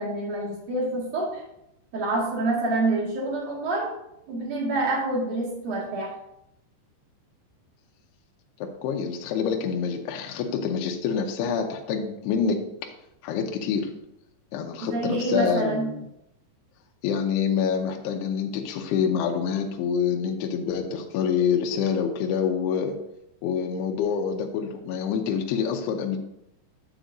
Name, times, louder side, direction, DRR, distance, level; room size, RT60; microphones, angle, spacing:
voice 1, 0.0-1.4 1.9-4.0 4.3-6.1 14.8-15.9, right 2 dB, 55° right, -3 dB, 2.7 m, -27 dB
voice 2, 8.8-12.9 13.2-13.9 14.5-16.0 17.0-23.0 23.4-26.2, left 7 dB, 80° left, 2 dB, 2.4 m, -26 dB
8.9 x 8.0 x 2.6 m, 0.83 s
omnidirectional pair, 5.4 m